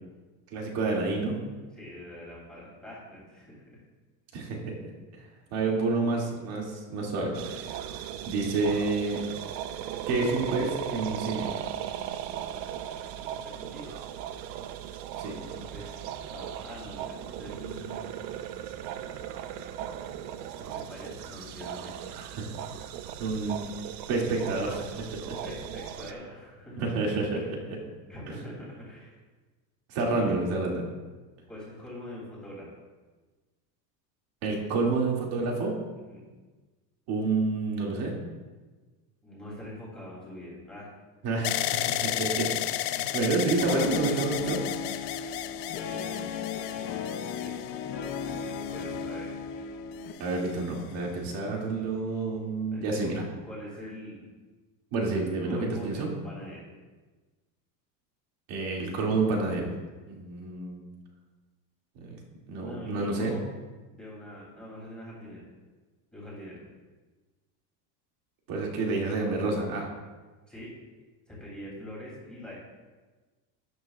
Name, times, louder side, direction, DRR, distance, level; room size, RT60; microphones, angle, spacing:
voice 1, 0.5-1.4 4.3-4.7 5.1-5.2 5.5-7.7 8.3-9.2 10.1-11.5 15.2-15.4 22.1-22.5 23.2-23.6 24.1-25.3 26.8-27.8 29.9-30.8 34.4-35.7 37.1-38.1 41.2-42.5 43.1-44.6 50.2-53.1 54.9-56.1 58.5-59.7 60.1-60.8 62.0-62.2 62.5-63.3 68.5-69.9, right 3 dB, 45° right, -1 dB, 2.4 m, -29 dB
voice 2, 1.7-3.8 13.1-14.0 14.8-15.0 15.3-15.9 16.3-18.1 20.5-21.9 25.4-26.8 27.1-27.5 28.1-29.1 30.0-30.3 31.5-32.7 36.1-36.3 39.2-40.9 42.9-43.7 45.5-46.3 46.7-47.5 48.2-49.3 52.7-53.2 53.4-54.2 55.4-56.6 62.6-63.4 63.9-65.4 66.1-66.6 70.5-70.7 71.3-72.6, left 1 dB, ahead, -7 dB, 2.9 m, -44 dB
sound 1, 7.3-26.1, right 10 dB, 90° right, 0.8 m, -38 dB
sound 2, 41.4-49.5 50.2-50.8, left 14 dB, 75° left, 0.7 m, -33 dB
Guitar, 43.6-50.1, left 6 dB, 25° left, 0.4 m, -36 dB
12.5 x 10.5 x 2.4 m, 1.3 s
cardioid pair, 170°, 49 cm